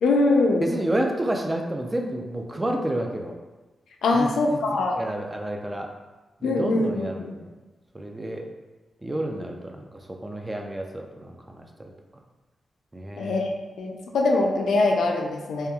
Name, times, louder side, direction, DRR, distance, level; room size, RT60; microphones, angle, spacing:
voice 1, 0.0-0.7 4.0-5.0 6.4-7.3 13.2-13.5 13.8-15.7, left 2 dB, 85° left, 1 dB, 0.3 m, -23 dB
voice 2, 0.6-3.3 4.1-5.9 6.4-7.5 7.9-8.4 9.0-11.9 12.9-13.5, right 1 dB, 20° right, 2 dB, 0.4 m, -30 dB
2.9 x 2.3 x 2.2 m, 1.2 s
cardioid pair, 65°, 0 cm